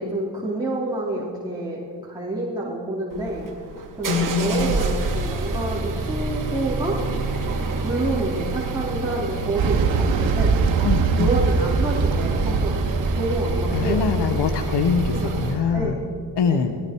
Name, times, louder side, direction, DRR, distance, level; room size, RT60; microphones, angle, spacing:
voice 1, 0.0-3.5 4.0-7.0 7.7-10.6 11.2-12.8 13.2-14.1 15.1-16.0 16.5-16.7, right 1 dB, 10° right, -7 dB, 4.0 m, -28 dB
sound 1, 3.1-15.6, right 3 dB, 45° right, 2.8 m, -27 dB
voice 2, 4.1-4.7 10.8-11.3 13.7-15.9 16.4-16.7, left 6 dB, 65° left, 6 dB, 1.4 m, -23 dB
sound 2, 9.6-14.4, right 5 dB, 85° right, 2.2 m, -23 dB
28.0 x 20.0 x 4.8 m, 2.3 s
cardioid pair, 125°, 45 cm